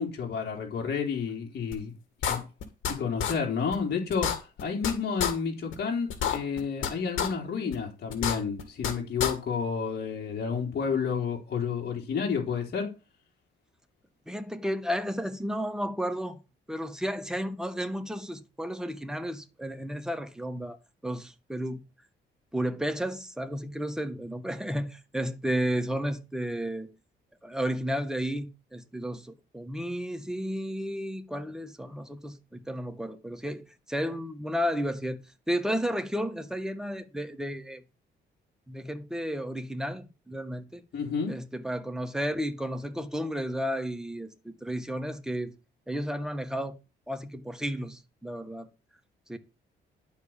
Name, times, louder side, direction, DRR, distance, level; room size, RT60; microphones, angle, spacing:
voice 1, 0.0-1.9 2.2-2.4 2.9-12.9 40.9-41.3, left 6 dB, 55° left, 3.7 m, -30 dB
sound 1, 1.7-1.8 2.2-2.9 3.2-3.3 3.7-3.8 4.1-4.9 5.2-5.3 5.7-5.8 6.1-6.9 7.2-7.3 7.7-7.8 8.1-8.9 9.2-9.3, left 8 dB, 80° left, 2.3 m, -28 dB
voice 2, 14.3-16.4 16.7-20.8 21.0-21.8 22.5-26.9 27.4-35.2 35.5-37.8 38.7-40.8 41.3-45.5 45.9-46.7 47.1-48.7 49.3-49.4, equal, 5° right, 1.8 m, -32 dB
11.5 x 4.8 x 7.4 m
cardioid pair, 90°, 20 cm